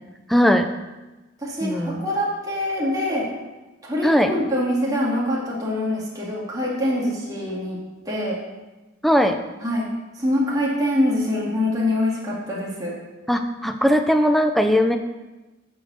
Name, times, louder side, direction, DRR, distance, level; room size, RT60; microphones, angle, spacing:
voice 1, 0.3-0.7 1.6-2.1 4.0-4.3 9.0-9.4 13.3-15.0, equal, ahead, 6 dB, 0.4 m, -19 dB
voice 2, 1.4-3.3 3.8-7.8 8.1-8.4 9.6-9.9 10.2-12.9, left 1 dB, 20° right, -6 dB, 2.0 m, -24 dB
9.2 x 4.7 x 6.9 m, 1.1 s
head